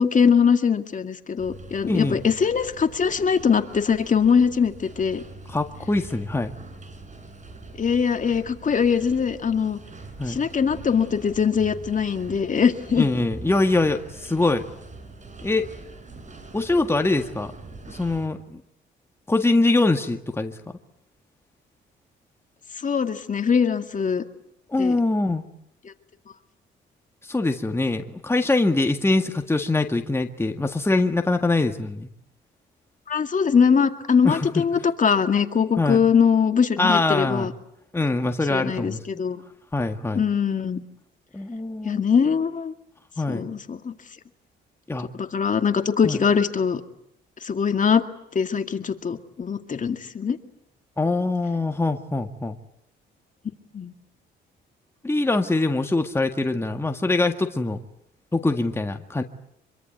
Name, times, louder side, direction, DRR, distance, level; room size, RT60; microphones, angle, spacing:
voice 1, 0.0-5.2 7.8-9.8 10.3-13.1 22.8-24.2 24.8-25.0 25.8-25.9 33.1-37.5 38.5-39.4 40.1-40.8 41.8-42.7 43.3-43.9 45.1-46.8 47.4-48.0 48.3-50.4 53.7-53.9, left 6 dB, 40° left, 7 dB, 2.2 m, -22 dB
sound 1, 1.4-18.3, right 3 dB, 40° right, 5.7 m, -43 dB
voice 2, 1.9-2.2 5.5-6.5 10.2-10.4 13.0-14.6 15.4-15.7 16.5-17.5 17.9-18.6 19.3-20.6 24.7-25.4 27.2-32.1 34.2-34.5 35.8-36.0 36.8-37.5 37.9-39.0 39.7-40.2 41.3-42.0 43.2-43.5 44.9-45.1 46.0-46.2 51.0-52.6 55.0-57.8 58.3-59.2, left 2 dB, 10° left, 5 dB, 1.8 m, -23 dB
25.5 x 24.0 x 9.4 m, 0.73 s
cardioid pair, 90°, 20 cm